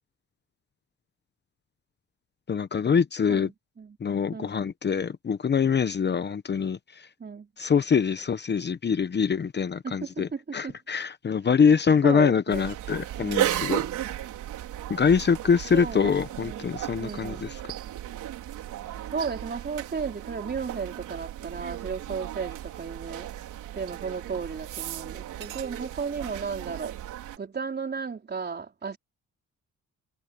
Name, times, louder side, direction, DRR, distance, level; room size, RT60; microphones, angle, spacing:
voice 1, 2.5-3.5 4.0-7.1 7.6-13.8 14.9-17.6, left 6 dB, 35° left, 1.0 m, -24 dB
voice 2, 3.3-4.0 4.3-4.6 7.2-7.5 9.8-10.7 12.0-12.7 13.2-14.1 15.7-16.7 17.0-17.4 19.1-23.3 23.7-26.9 27.4-29.0, right 5 dB, 35° right, 4.4 m, -34 dB
sound 1, 12.5-27.4, right 12 dB, 85° right, 3.9 m, -35 dB
cardioid pair, 90°, 30 cm